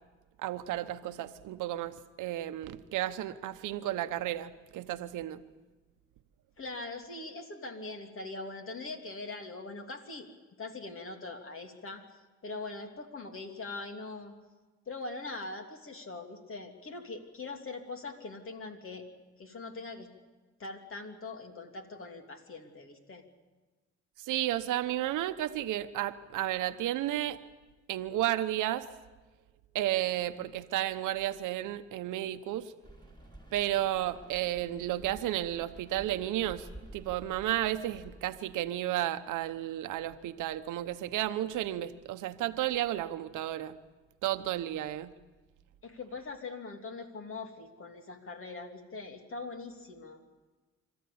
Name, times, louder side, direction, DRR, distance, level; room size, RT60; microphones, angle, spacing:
voice 1, 0.4-5.4 24.2-27.4 27.9-28.9 29.7-32.7 33.5-36.7 36.9-43.8 44.2-45.1, right 13 dB, 90° right, 1.0 m, -32 dB
voice 2, 6.6-10.3 10.6-12.0 12.4-14.3 14.9-19.0 19.4-20.1 20.6-23.2 45.8-50.2, left 3 dB, 45° left, 3.1 m, -42 dB
Rain, 32.8-38.2, right 1 dB, 15° left, 4.2 m, -51 dB
26.5 x 14.0 x 8.6 m
cardioid pair, 90°, 30 cm